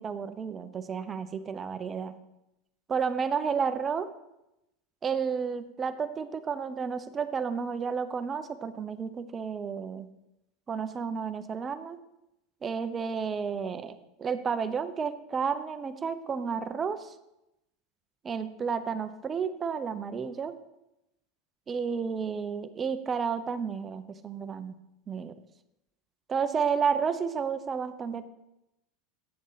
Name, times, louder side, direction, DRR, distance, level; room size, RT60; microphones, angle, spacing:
voice 1, 0.0-2.1 2.9-4.1 5.0-10.1 10.7-12.0 12.6-13.9 14.2-17.1 18.2-20.5 21.7-24.7 25.1-25.3 26.3-28.3, right 6 dB, 20° right, 11 dB, 0.5 m, -31 dB
8.6 x 7.1 x 3.9 m, 0.88 s
supercardioid pair, 145°, 0 cm